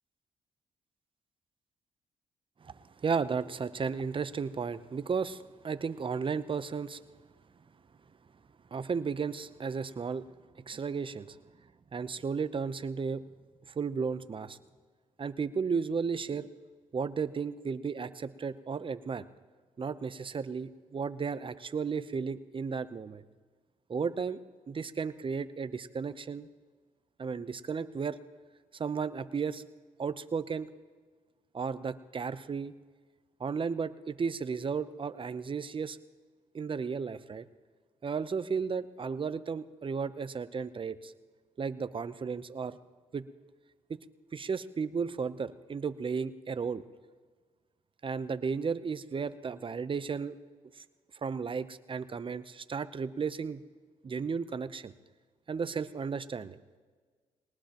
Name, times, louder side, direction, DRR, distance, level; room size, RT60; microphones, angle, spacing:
voice 1, 2.6-7.0 8.7-10.2 10.7-11.4 11.9-13.2 13.8-14.6 15.2-16.5 16.9-19.2 19.8-23.2 23.9-24.4 24.7-26.5 27.2-28.2 28.8-29.6 30.0-30.7 31.5-32.7 33.4-36.0 36.5-37.4 38.0-41.1 41.6-42.8 43.1-43.3 43.9-44.0 44.3-46.8 48.0-50.4 51.2-53.6 54.0-54.9 55.5-56.6, right 5 dB, 40° right, 13 dB, 0.8 m, -34 dB
21.0 x 19.0 x 3.0 m, 1.5 s
supercardioid pair, 60°, 14 cm